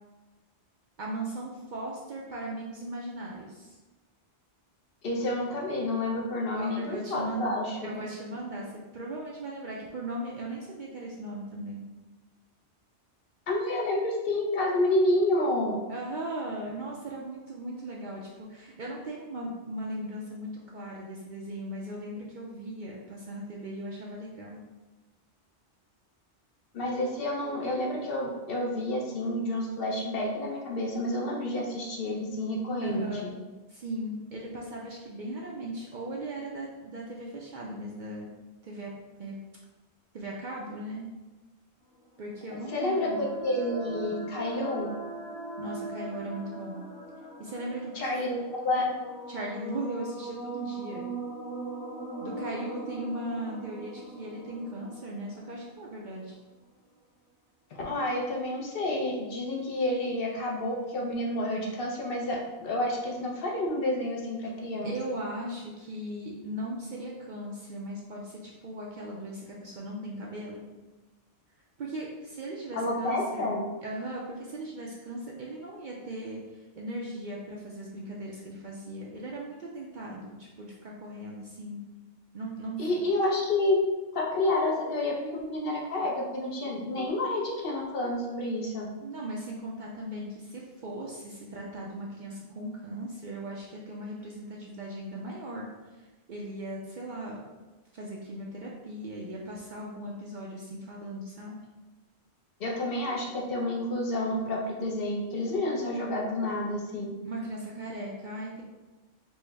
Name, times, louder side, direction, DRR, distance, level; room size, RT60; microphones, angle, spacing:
voice 1, 1.0-3.8 6.5-7.5 7.8-11.8 15.9-24.6 32.8-33.3 33.7-38.3 38.6-38.9 39.2-39.4 40.1-41.1 42.2-43.3 45.6-46.8 47.4-47.9 49.3-51.1 52.2-56.4 64.8-70.6 71.8-73.5 73.8-76.4 76.8-81.8 82.3-82.9 89.0-95.7 96.3-97.5 97.9-101.6 107.2-108.6, right 1 dB, 55° right, -3 dB, 0.6 m, -38 dB
voice 2, 5.0-8.0 13.5-15.8 26.7-33.1 42.7-44.9 47.9-48.9 57.7-64.9 72.7-73.6 82.8-83.8 84.1-88.9 102.6-107.1, left 1 dB, 60° left, -1 dB, 0.8 m, -29 dB
sound 1, 42.1-56.2, right 3 dB, 85° left, 1.9 m, -40 dB
4.5 x 2.0 x 3.3 m, 1.2 s
omnidirectional pair, 1.2 m